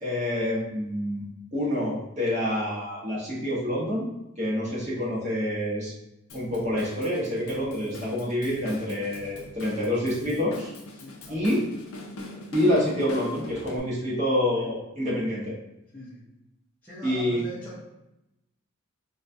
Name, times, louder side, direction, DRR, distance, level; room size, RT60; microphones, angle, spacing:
voice 1, 0.0-1.2 1.5-4.0 4.4-5.9 6.3-10.7 11.3-11.6 12.5-15.6 17.0-17.4, left 1 dB, 35° right, -6 dB, 1.0 m, -27 dB
Drum kit / Drum, 6.3-13.8, left 1 dB, 80° left, 0.6 m, -42 dB
voice 2, 11.0-11.7 12.3-12.5 14.0-14.2 15.9-16.3 16.8-17.8, left 1 dB, 10° left, -9 dB, 0.6 m, -43 dB
4.1 x 2.3 x 2.5 m, 0.91 s
head